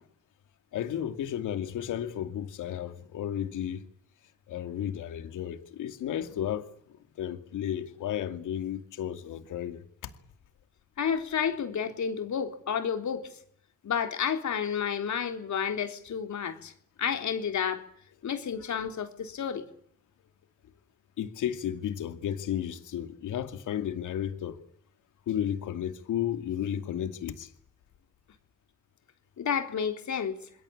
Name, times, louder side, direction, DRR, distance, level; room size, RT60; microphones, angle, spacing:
voice 1, 0.7-3.8 4.5-6.7 7.2-10.1 21.2-24.6 25.3-27.5, left 10 dB, 90° left, 2.5 m, -33 dB
voice 2, 11.0-13.3 13.8-16.7 17.0-17.8 18.2-19.6 29.4-30.3, left 7 dB, 70° left, 3.7 m, -30 dB
27.5 x 21.0 x 8.7 m
supercardioid pair, 60°, 30 cm